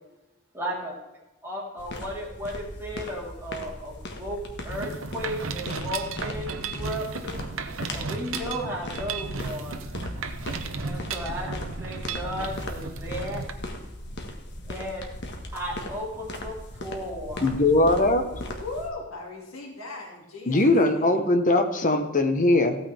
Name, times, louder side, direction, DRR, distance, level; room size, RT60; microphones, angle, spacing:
voice 1, 0.5-1.0 1.4-7.4 7.9-9.8 10.8-13.4 14.6-15.0 15.5-17.5, equal, 10° right, -5 dB, 3.9 m, -35 dB
sound 1, 1.8-18.9, left 1 dB, 55° left, 1.7 m, -38 dB
Mechanisms, 4.7-13.5, right 4 dB, 70° right, 0.9 m, -35 dB
voice 2, 17.4-18.2 20.5-22.8, left 2 dB, 40° left, 6 dB, 1.3 m, -20 dB
voice 3, 18.6-21.3, left 2 dB, 85° left, -1 dB, 2.6 m, -38 dB
15.5 x 9.1 x 3.6 m, 0.99 s
head